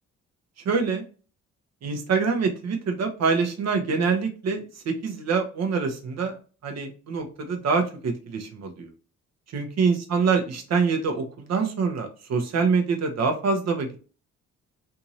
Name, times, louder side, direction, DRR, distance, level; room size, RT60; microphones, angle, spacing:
voice 1, 0.6-1.0 1.8-6.4 6.6-8.9 9.5-14.0, right 5 dB, 60° right, 5 dB, 1.1 m, -25 dB
3.5 x 2.8 x 3.0 m, 0.36 s
cardioid pair, 90°, 30 cm